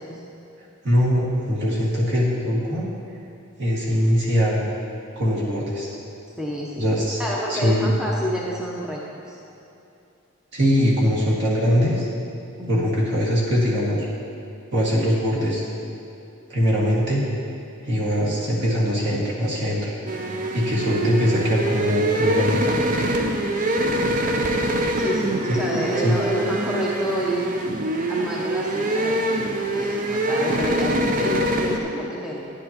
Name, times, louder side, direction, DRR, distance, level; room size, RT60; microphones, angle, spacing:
voice 1, 0.8-2.9 3.6-4.7 5.2-6.0 6.8-7.2 7.5-8.0 10.5-12.1 12.7-14.1 14.7-15.7 16.5-17.2 17.8-19.9 20.5-22.8 25.5-25.6 26.0-26.2, equal, 55° right, -5 dB, 2.0 m, -21 dB
voice 2, 6.4-6.9 7.2-9.0 9.3-9.4 12.6-12.9 25.0-27.5 28.1-32.4, equal, 5° right, -4 dB, 0.7 m, -29 dB
sound 1, 20.1-31.8, right 1 dB, 40° right, 0.6 m, -24 dB
10.0 x 10.0 x 2.9 m, 2.8 s
head